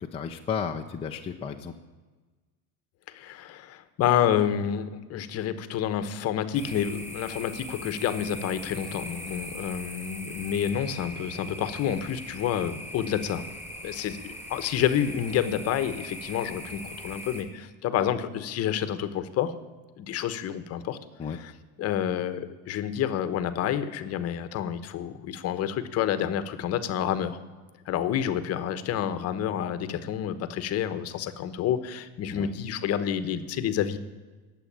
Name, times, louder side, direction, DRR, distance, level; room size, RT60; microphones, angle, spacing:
voice 1, 0.0-1.7 21.2-21.4 32.3-32.5, left 6 dB, 15° left, 1 dB, 0.6 m, -33 dB
voice 2, 3.1-13.4 13.8-19.5 20.0-21.0 21.4-21.5 21.8-27.4 27.9-34.0, left 9 dB, 35° left, 13 dB, 1.1 m, -29 dB
sound 1, 6.5-17.4, equal, 5° right, 2.5 m, -41 dB
19.5 x 7.9 x 8.6 m, 1.3 s
cardioid pair, 165°, 41 cm